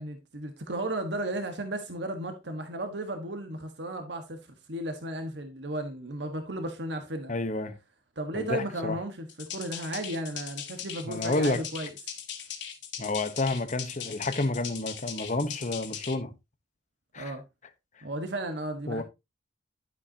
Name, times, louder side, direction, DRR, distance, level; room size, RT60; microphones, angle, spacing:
voice 1, 0.0-4.4 4.7-7.3 8.2-11.9 17.2-17.4 18.0-19.0, right 1 dB, 75° right, 1.5 m, -34 dB
voice 2, 7.3-7.8 8.3-9.0 11.0-11.6 13.0-16.3 17.1-17.3 18.9-19.0, left 2 dB, 45° left, 1.1 m, -30 dB
sound 1, 9.3-16.1, left 8 dB, 85° left, 2.3 m, -39 dB
12.0 x 8.0 x 2.9 m
head